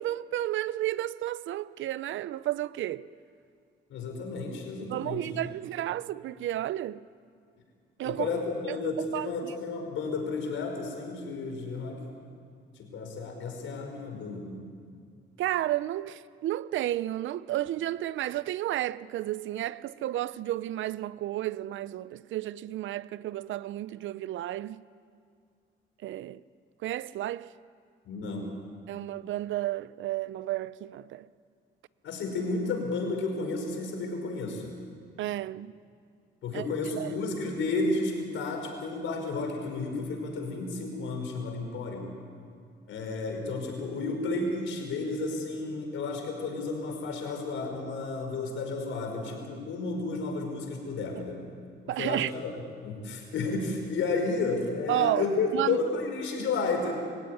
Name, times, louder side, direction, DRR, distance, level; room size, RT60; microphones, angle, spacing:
voice 1, 0.0-3.1 4.8-7.0 8.0-8.3 8.7-8.8 9.1-9.5 15.4-24.9 26.0-26.4 26.8-27.5 28.9-31.3 35.2-35.7 36.5-36.7 37.0-37.2 51.9-52.3 54.9-55.2 55.5-55.8, right 14 dB, 75° right, 0.6 m, -32 dB
voice 2, 3.9-5.3 8.0-12.0 12.8-14.6 28.0-28.6 32.0-34.8 36.4-42.0 42.9-51.4 51.8-52.5 52.8-56.9, left 3 dB, 80° left, 5.4 m, -32 dB
24.5 x 16.0 x 9.8 m
cardioid pair, 90°, 20 cm